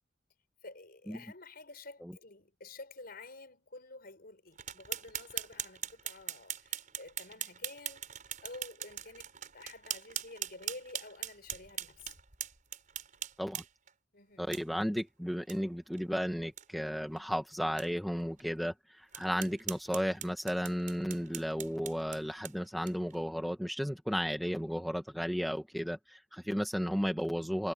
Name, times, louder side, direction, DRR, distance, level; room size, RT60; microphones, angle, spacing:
voice 1, 0.6-8.0 8.4-12.1 14.1-14.5, left 2 dB, 50° left, 5.7 m, -50 dB
sound 1, 4.6-13.9 14.5-14.6 15.0-15.1 15.5-15.6 15.9-16.0 16.4-16.6 17.2-17.3 17.8-17.9 18.4-18.5 19.1-23.2, right 10 dB, 45° right, 5.5 m, -41 dB
voice 2, 14.4-27.7, equal, ahead, 1.2 m, -34 dB
head